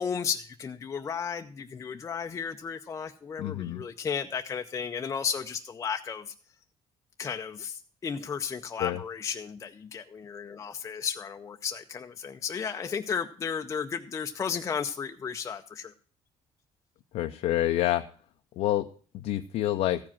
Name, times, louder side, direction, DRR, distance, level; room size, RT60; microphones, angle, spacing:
voice 1, 0.0-6.3 7.2-15.9, left 6 dB, 30° left, 6 dB, 0.5 m, -34 dB
voice 2, 3.4-3.8 8.8-9.0 17.1-18.0 18.6-18.9 19.1-20.0, left 14 dB, 75° left, 6 dB, 0.6 m, -27 dB
14.5 x 4.9 x 7.2 m, 0.43 s
cardioid pair, 125°, 11 cm